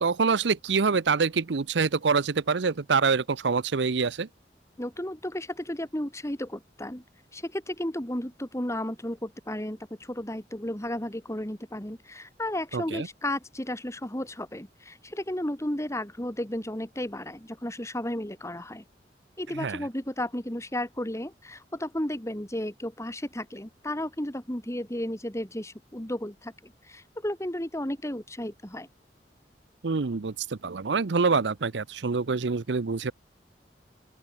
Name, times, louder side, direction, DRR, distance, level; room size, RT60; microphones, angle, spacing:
voice 1, 0.0-4.3 12.7-13.1 19.6-19.8 29.8-33.1, right 5 dB, 85° right, 0.7 m, -26 dB
voice 2, 4.8-7.0 7.3-18.8 19.4-28.9, left 1 dB, 15° left, 2.6 m, -33 dB
open air
head